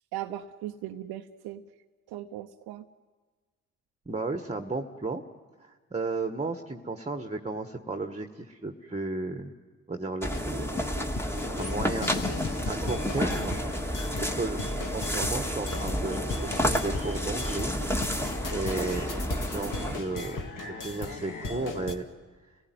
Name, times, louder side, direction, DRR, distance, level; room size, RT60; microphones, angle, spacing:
voice 1, 0.1-1.6 2.1-2.8 11.4-11.6, right 13 dB, 70° right, 5 dB, 0.8 m, -38 dB
voice 2, 4.0-5.2 5.6-9.5 9.9-10.8 11.3-13.6 14.1-14.6 14.9-17.7 18.5-19.2 19.4-22.1, right 3 dB, 15° right, 7 dB, 1.5 m, -34 dB
sound 1, 10.2-20.0, equal, 5° left, 1.9 m, -30 dB
sound 2, 10.3-22.0, left 3 dB, 50° left, 2.4 m, -38 dB
30.0 x 16.5 x 9.4 m, 1.4 s
hypercardioid pair, 45°, 39 cm